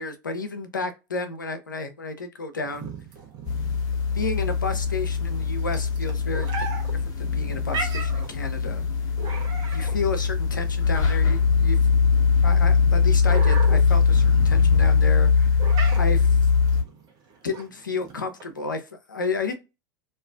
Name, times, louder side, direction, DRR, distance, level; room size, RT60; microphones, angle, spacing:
voice 1, 0.0-2.9 4.1-6.5 7.2-8.8 9.7-11.8 12.4-15.6 16.0-16.4 17.4-19.6, left 3 dB, 90° left, 0.5 m, -31 dB
sound 1, 2.7-18.6, right 4 dB, 45° right, 0.8 m, -38 dB
sound 2, 3.5-16.8, left 5 dB, 35° left, 0.8 m, -21 dB
2.4 x 2.3 x 2.3 m
hypercardioid pair, 85°, 10 cm